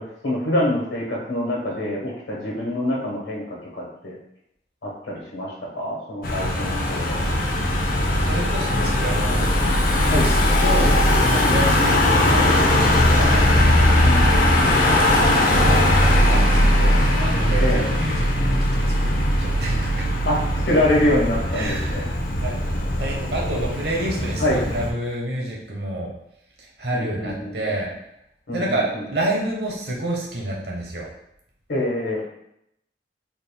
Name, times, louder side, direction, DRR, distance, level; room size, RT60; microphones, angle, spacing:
voice 1, 0.0-4.2 4.8-7.2 10.1-10.3 14.1-15.2 17.6-17.8 20.3-20.4 20.6-22.1 24.4-24.6 26.9-27.7 28.5-29.0 31.7-32.2, left 1 dB, 85° left, -3 dB, 1.2 m, -25 dB
Car passing by / Engine, 6.2-24.9, left 1 dB, 50° left, 0.6 m, -19 dB
voice 2, 8.2-9.5 9.9-13.8 15.2-20.1 21.5-22.7 23.0-26.1 26.6-27.9 28.5-31.1, right 1 dB, 65° right, -2 dB, 0.9 m, -29 dB
3.8 x 3.5 x 2.3 m, 0.77 s
head